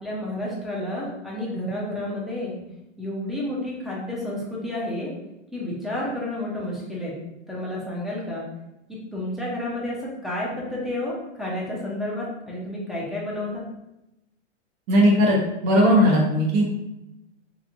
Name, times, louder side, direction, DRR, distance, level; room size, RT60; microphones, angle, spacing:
voice 1, 0.0-2.6 3.0-5.1 5.5-7.2 7.5-8.4 8.9-13.6, left 1 dB, ahead, -6 dB, 0.5 m, -30 dB
voice 2, 14.9-15.4 15.6-16.6, equal, 45° right, -3 dB, 0.7 m, -17 dB
3.0 x 2.6 x 2.4 m, 0.92 s
hypercardioid pair, 125°, 35 cm